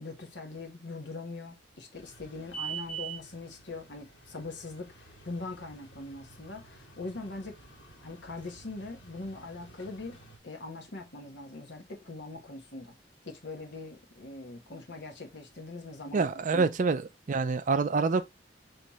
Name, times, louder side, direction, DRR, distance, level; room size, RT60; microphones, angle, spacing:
voice 1, 0.0-7.5 8.0-10.2 10.4-12.9 13.2-16.7, left 3 dB, 70° left, 1.2 m, -42 dB
sound 1, 1.9-10.4, right 7 dB, 85° left, 1.9 m, -46 dB
voice 2, 16.1-18.2, right 4 dB, 45° right, 0.4 m, -27 dB
5.5 x 3.2 x 3.0 m
head